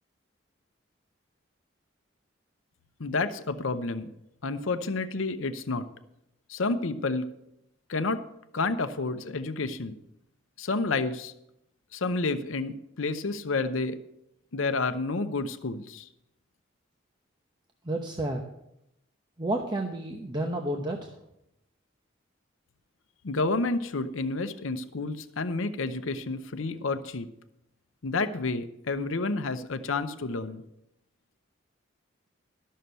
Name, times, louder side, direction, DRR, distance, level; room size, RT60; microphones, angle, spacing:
voice 1, 3.0-4.1 4.4-5.9 6.5-7.3 7.9-8.2 8.5-9.9 10.6-11.3 11.9-14.0 14.5-16.1 23.2-27.3 28.0-30.6, left 3 dB, 90° left, 10 dB, 0.7 m, -30 dB
voice 2, 17.8-18.4 19.4-21.1, right 1 dB, 20° right, 2 dB, 0.8 m, -30 dB
12.5 x 6.5 x 6.8 m, 0.82 s
head